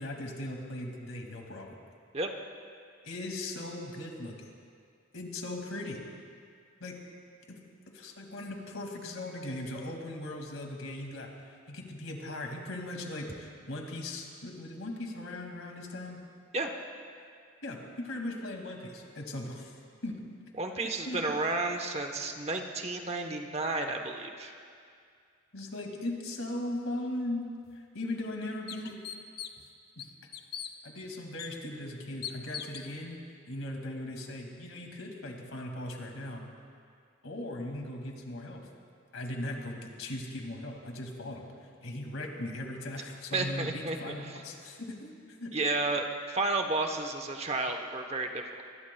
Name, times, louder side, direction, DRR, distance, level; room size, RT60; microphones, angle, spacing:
voice 1, 0.0-1.8 3.0-4.5 5.1-6.0 6.8-6.9 7.5-7.6 7.9-16.2 17.6-19.7 20.0-20.2 21.1-21.4 25.5-29.0 30.0-30.1 30.8-33.2 33.5-36.4 37.2-38.7 39.1-41.5 41.8-45.6, left 1 dB, 90° left, 1 dB, 2.3 m, -38 dB
voice 2, 20.6-24.5 43.3-44.4 45.5-48.6, right 2 dB, 30° right, 4 dB, 1.0 m, -32 dB
sound 1, 27.6-27.7 28.2-28.3 28.7-29.7 30.0-30.7 31.4-31.5 32.2-32.9, left 9 dB, 50° left, 0.7 m, -40 dB
24.5 x 20.5 x 2.3 m, 2.2 s
head